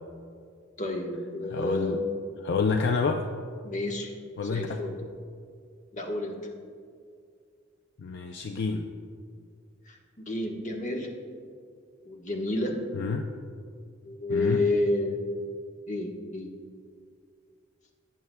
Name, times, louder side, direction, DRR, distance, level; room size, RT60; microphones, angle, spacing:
voice 1, 0.8-2.1 3.6-4.1 4.4-4.9 5.9-6.3 9.9-11.1 12.0-12.7 14.0-15.3 15.9-16.5, left 2 dB, 40° left, 1 dB, 1.2 m, -30 dB
voice 2, 1.5-2.0 2.4-3.3 4.4-4.8 8.0-8.9 12.9-13.3 14.3-14.7, left 4 dB, 60° left, 4 dB, 0.5 m, -28 dB
17.5 x 9.2 x 2.2 m, 2.2 s
head